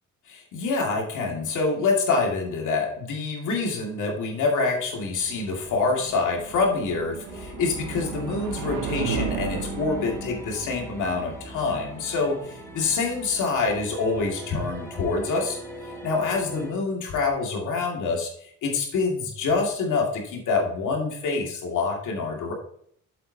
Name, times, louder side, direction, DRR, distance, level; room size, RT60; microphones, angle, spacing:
voice 1, 0.3-15.6 16.0-18.3 18.6-22.5, left 4 dB, 80° left, 1 dB, 2.3 m, -26 dB
sound 1, 4.5-13.5, right 6 dB, 90° right, 1.0 m, -36 dB
sound 2, 7.3-16.7, left 1 dB, 10° left, 2.8 m, -40 dB
7.9 x 7.7 x 2.8 m, 0.67 s
cardioid pair, 90°, 30 cm